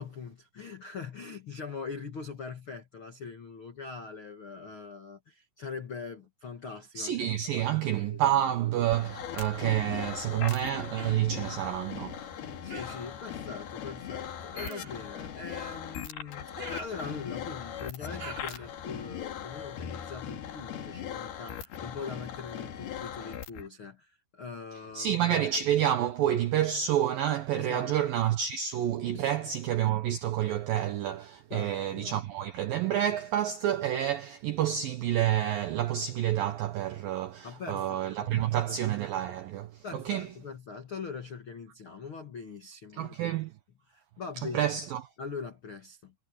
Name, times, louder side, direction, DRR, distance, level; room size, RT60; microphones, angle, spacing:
voice 1, 0.0-7.1 7.4-8.5 12.6-25.2 27.6-28.0 29.1-29.5 31.5-32.2 37.4-38.5 39.8-43.4 43.9-44.7 45.2-46.1, left 5 dB, 85° left, 1.1 m, -42 dB
voice 2, 7.0-12.3 24.9-40.3 42.9-43.5 44.4-45.0, right 11 dB, 85° right, 2.0 m, -29 dB
sound 1, 8.9-23.7, left 9 dB, 60° left, 3.7 m, -39 dB
Human voice, 11.0-11.3 12.7-13.2 14.5-15.1 16.6-17.5 18.2-18.7, right 3 dB, 35° right, 7.5 m, -44 dB
omnidirectional pair, 5.4 m